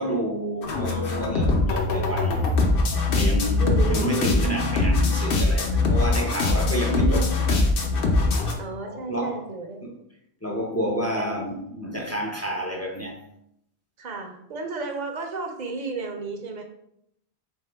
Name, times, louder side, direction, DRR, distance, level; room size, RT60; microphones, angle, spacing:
voice 1, 0.0-2.5 3.1-7.7 8.8-9.4 9.8-9.9 10.4-13.2, equal, 25° left, 0.3 m, -29 dB
sound 1, 0.6-8.5, left 3 dB, 60° left, 0.9 m, -22 dB
voice 2, 3.6-4.2 8.6-9.9 11.1-11.5 14.0-16.6, right 4 dB, 50° right, 0.7 m, -33 dB
3.7 x 3.6 x 3.3 m
omnidirectional pair, 1.1 m